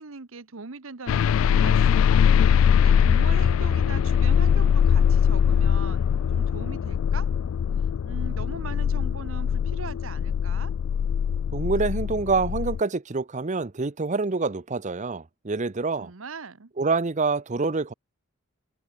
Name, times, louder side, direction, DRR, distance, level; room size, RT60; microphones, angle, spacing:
voice 1, 0.0-2.3 2.7-7.3 8.0-10.7 16.0-16.7, right 4 dB, 70° right, 1.1 m, -40 dB
sound 1, 1.1-12.8, left 7 dB, 70° left, 0.3 m, -22 dB
voice 2, 11.5-16.1 16.8-17.9, right 3 dB, 35° right, 0.7 m, -26 dB
head